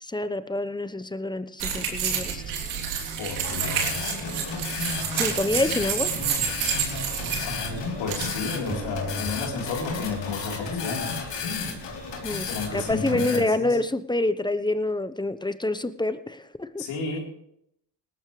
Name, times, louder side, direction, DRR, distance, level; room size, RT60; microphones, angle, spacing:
voice 1, 0.0-2.4 5.1-6.1 12.2-16.8, left 2 dB, 10° left, 13 dB, 1.0 m, -27 dB
sound 1, 1.6-9.1, right 7 dB, 90° right, 3.2 m, -30 dB
voice 2, 3.2-4.3 7.4-11.2 12.5-13.7 16.8-17.2, left 4 dB, 85° left, -1 dB, 4.1 m, -33 dB
sound 2, 3.3-8.4 8.7-12.9, right 1 dB, 25° right, 5.9 m, -42 dB
sound 3, 3.4-13.4, left 5 dB, 65° left, 3.5 m, -33 dB
19.0 x 14.0 x 3.3 m, 0.74 s
supercardioid pair, 65°, 45 cm